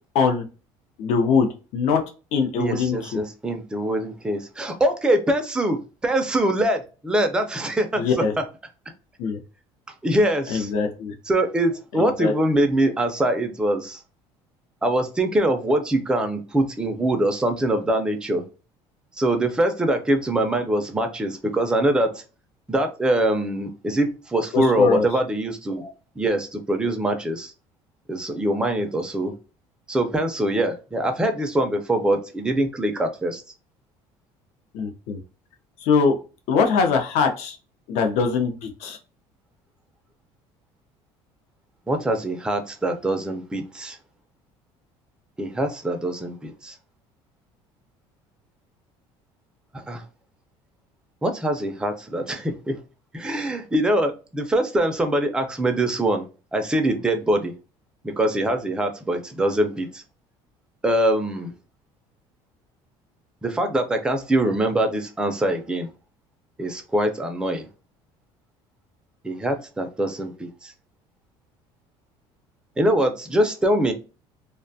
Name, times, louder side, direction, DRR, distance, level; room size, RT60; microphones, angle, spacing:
voice 1, 1.0-2.0 2.3-3.2 8.0-8.3 9.2-9.4 10.5-11.1 11.9-12.3 24.5-25.0 34.7-35.2 35.8-36.2 36.5-37.6 37.9-39.0, left 5 dB, 70° left, 0.6 m, -22 dB
voice 2, 2.6-8.4 10.0-10.7 11.3-14.0 14.8-18.4 19.2-22.2 22.7-27.5 28.1-29.3 29.9-33.4 41.9-44.0 45.4-46.7 49.9-50.0 51.2-52.8 53.1-56.2 56.5-57.5 58.0-60.0 60.8-61.5 63.4-65.9 66.6-67.7 69.2-70.7 72.8-73.9, right 1 dB, 5° right, 0.4 m, -23 dB
2.4 x 2.2 x 2.6 m
cardioid pair, 160°, 12 cm